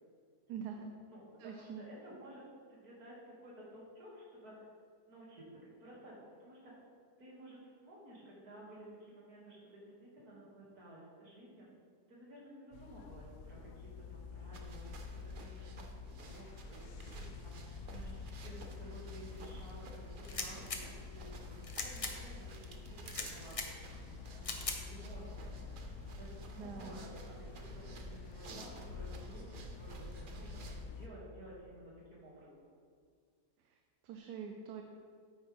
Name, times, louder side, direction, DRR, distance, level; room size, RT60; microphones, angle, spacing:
voice 1, 0.5-0.9 1.4-1.8 26.6-27.1 33.6-34.8, right 6 dB, 80° right, 4 dB, 1.2 m, -45 dB
voice 2, 1.1-2.4 2.7-4.6 5.1-6.7 7.2-11.7 12.1-15.0 15.3-20.0 20.3-20.8 21.1-23.7 24.3-25.7 26.2-27.2 27.5-32.7, right 1 dB, 65° right, -5 dB, 2.7 m, -54 dB
sound 1, 12.7-31.1, left 5 dB, 75° left, 1.1 m, -49 dB
sound 2, 14.5-30.8, right 3 dB, 50° right, 0.6 m, -52 dB
sound 3, 20.2-20.8 21.6-22.1 23.0-23.7 24.4-24.8, left 4 dB, 45° left, 0.4 m, -39 dB
8.8 x 8.7 x 3.4 m, 2.1 s
omnidirectional pair, 1.7 m